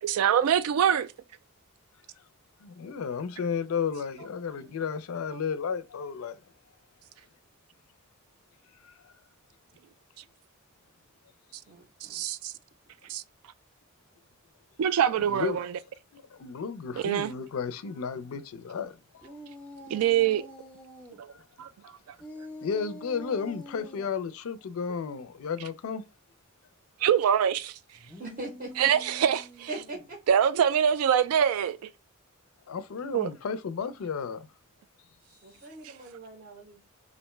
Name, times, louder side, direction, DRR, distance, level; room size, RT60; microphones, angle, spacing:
voice 1, 0.0-1.1 5.3-5.4 12.0-12.5 13.1-13.2 14.8-15.8 17.0-17.3 19.9-20.5 21.2-21.3 21.6-21.7 27.0-27.8 28.8-29.7 30.3-31.8 33.1-33.3, right 9 dB, 80° right, 0.3 m, -24 dB
voice 2, 2.6-6.4 8.8-8.9 15.3-15.6 16.1-19.3 21.3-21.4 22.6-26.0 32.7-34.5, left 6 dB, 70° left, 0.4 m, -33 dB
voice 3, 11.7-12.2 28.2-28.9 29.7-30.2 35.4-36.8, right 2 dB, 45° right, 0.6 m, -41 dB
sound 1, 19.2-21.2 22.2-24.1 27.9-30.2, equal, 5° left, 0.5 m, -46 dB
2.5 x 2.1 x 3.0 m
head